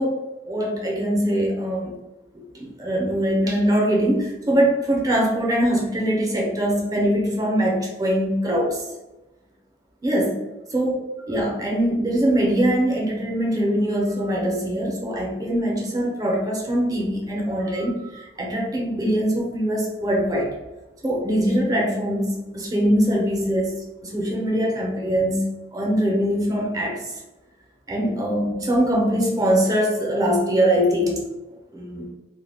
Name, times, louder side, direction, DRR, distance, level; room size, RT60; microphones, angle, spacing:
voice 1, 0.0-1.9 2.3-8.8 10.0-10.4 10.7-11.0 11.3-20.5 21.0-25.5 25.7-27.1 27.9-31.2 31.7-32.1, equal, 20° right, -2 dB, 0.5 m, -22 dB
2.1 x 2.1 x 3.3 m, 1.0 s
head